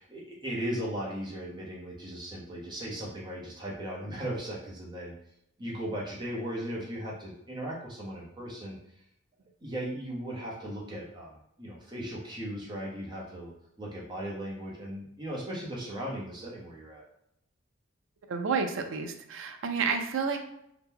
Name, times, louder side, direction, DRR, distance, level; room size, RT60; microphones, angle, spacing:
voice 1, 0.0-5.1 5.6-8.8 9.6-17.0, equal, 20° right, -4 dB, 0.7 m, -37 dB
voice 2, 18.3-20.4, right 5 dB, 70° right, 6 dB, 0.4 m, -30 dB
2.8 x 2.1 x 3.6 m, 0.77 s
head